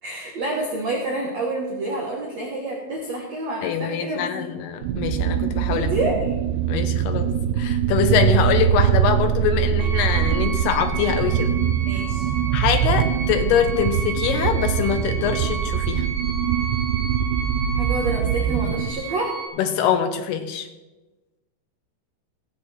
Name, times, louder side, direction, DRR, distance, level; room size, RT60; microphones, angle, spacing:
voice 1, 0.0-4.3 5.6-6.2 11.8-12.3 17.7-19.3, right 2 dB, 65° right, -1 dB, 1.6 m, -28 dB
voice 2, 3.6-5.9 6.7-11.6 12.5-16.1 19.6-20.7, left 8 dB, 80° left, 7 dB, 2.3 m, -24 dB
sound 1, 4.8-18.9, right 9 dB, 85° right, 2.7 m, -23 dB
sound 2, 9.8-19.5, right 4 dB, 20° right, 2.7 m, -33 dB
17.0 x 7.8 x 4.4 m, 1.1 s
omnidirectional pair, 5.5 m